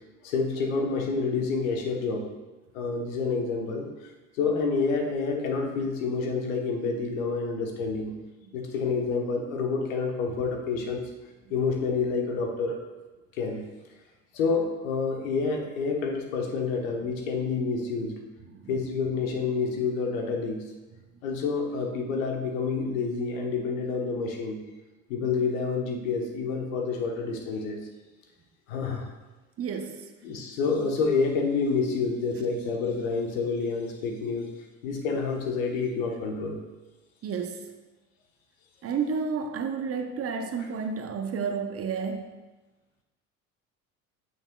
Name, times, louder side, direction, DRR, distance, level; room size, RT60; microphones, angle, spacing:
voice 1, 0.2-2.3 2.7-3.9 4.4-8.2 8.5-11.1 11.5-12.8 13.4-13.7 14.3-18.2 18.7-20.6 21.2-24.6 25.1-27.8 28.7-29.1 30.2-34.5 34.8-36.6, left 4 dB, 70° left, 2 dB, 1.2 m, -28 dB
voice 2, 18.4-18.8 29.6-30.1 37.2-37.7 38.8-42.3, right 5 dB, 35° right, 6 dB, 0.8 m, -31 dB
8.7 x 6.5 x 2.3 m, 1.1 s
hypercardioid pair, 70°, 42 cm